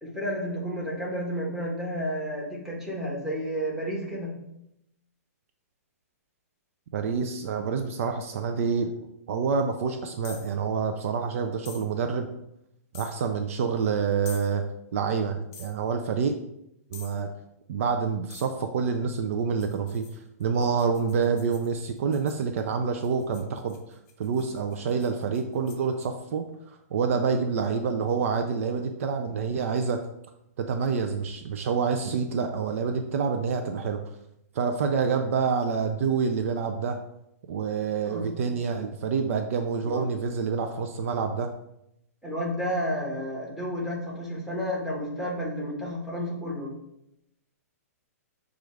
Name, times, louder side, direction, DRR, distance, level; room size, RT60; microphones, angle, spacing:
voice 1, 0.0-4.4 38.0-38.3 39.8-40.0 42.2-46.7, equal, 5° right, -4 dB, 1.4 m, -31 dB
voice 2, 6.9-8.9 9.3-12.3 12.9-14.6 14.9-16.3 16.9-17.3 17.7-20.0 20.4-23.8 24.2-30.0 30.6-34.0 34.5-37.0 37.5-41.5, right 5 dB, 60° right, 6 dB, 0.4 m, -27 dB
sound 1, 10.2-10.5 11.6-11.9 12.9-13.2 14.2-14.5 15.5-15.8 16.9-17.2 18.3-18.6 19.6-22.4 23.0-26.1, left 6 dB, 30° left, 0.7 m, -47 dB
6.2 x 2.4 x 3.2 m, 0.81 s
hypercardioid pair, 135°, 9 cm